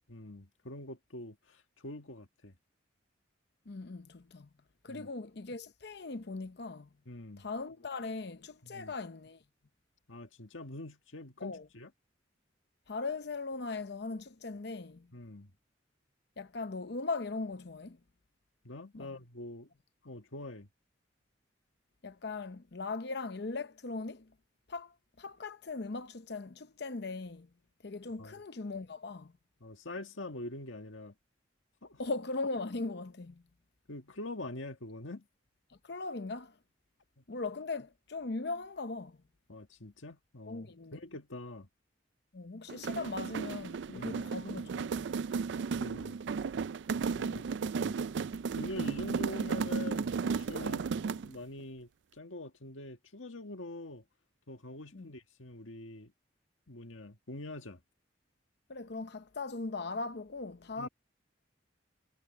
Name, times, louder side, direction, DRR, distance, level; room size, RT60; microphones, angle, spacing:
voice 1, 0.1-2.5 4.9-5.1 7.1-7.5 8.6-8.9 10.1-11.9 15.1-15.5 18.6-19.7 20.0-20.7 28.2-28.4 29.6-31.1 31.8-32.0 33.9-35.3 37.2-37.3 39.5-41.7 43.9-44.3 45.7-46.2 47.0-47.9 48.6-50.8 51.2-54.0 54.5-56.1 56.7-57.8 60.8-60.9, left 2 dB, 90° left, 1.8 m, -45 dB
voice 2, 3.7-4.5 4.8-6.9 7.4-9.4 11.4-11.7 12.9-15.1 16.4-18.0 18.9-19.1 22.0-24.3 24.7-27.5 27.8-29.3 32.0-33.4 35.7-36.6 37.3-39.2 40.5-41.0 42.3-45.1 47.2-47.5 50.6-50.8 54.9-55.1 58.7-60.9, left 3 dB, 55° left, 0.7 m, -39 dB
sound 1, 42.7-51.4, right 5 dB, 65° right, 0.4 m, -34 dB
head